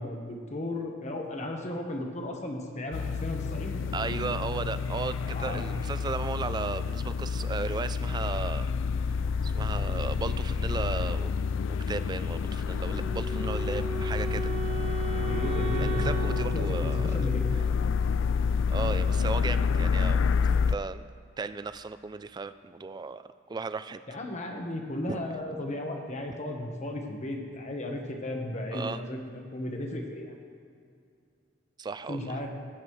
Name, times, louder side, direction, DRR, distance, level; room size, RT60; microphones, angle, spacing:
voice 1, 0.0-3.8 5.2-5.6 15.3-16.1 16.4-17.5 24.1-29.2 29.5-30.4 32.1-32.5, left 1 dB, 40° left, 2 dB, 1.3 m, -35 dB
sound 1, 2.9-20.8, left 5 dB, 90° left, 0.3 m, -28 dB
voice 2, 3.9-8.7 9.4-11.3 11.7-14.5 15.8-17.3 18.7-20.2 20.7-21.0 21.4-23.2 23.5-24.0 25.1-25.2 28.7-29.0 31.8-32.4, right 4 dB, 20° right, 12 dB, 0.3 m, -35 dB
Wind instrument woodwind instrument, 12.9-17.9, right 7 dB, 70° left, 2.8 m, -37 dB
17.5 x 8.5 x 3.2 m, 2.4 s
head